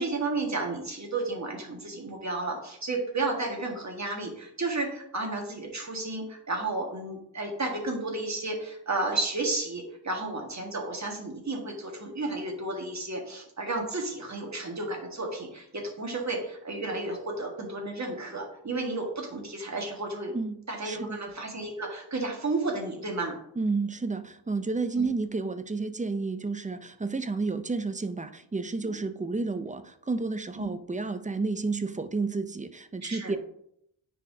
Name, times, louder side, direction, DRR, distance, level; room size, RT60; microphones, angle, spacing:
voice 1, 0.0-20.3 20.7-23.4 25.0-25.1 28.8-28.9 30.6-30.7 33.0-33.3, right 2 dB, 40° right, 1 dB, 1.7 m, -32 dB
voice 2, 20.8-21.2 23.6-33.4, right 3 dB, 20° right, 11 dB, 0.4 m, -31 dB
9.4 x 4.6 x 2.7 m, 0.73 s
wide cardioid pair, 80°, 44 cm